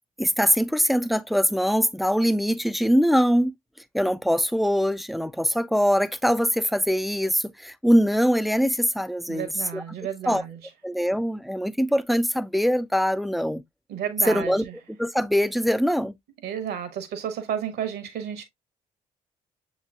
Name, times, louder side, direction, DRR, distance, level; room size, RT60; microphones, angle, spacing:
voice 1, 0.2-3.5 3.9-9.8 10.3-10.4 10.8-13.6 14.3-14.6 15.0-16.2, equal, ahead, 0.4 m, -23 dB
voice 2, 9.3-10.6 13.9-14.7 16.4-18.4, right 9 dB, 60° right, 1.2 m, -32 dB
7.1 x 3.1 x 2.3 m
figure-of-eight pair, 45°, 18 cm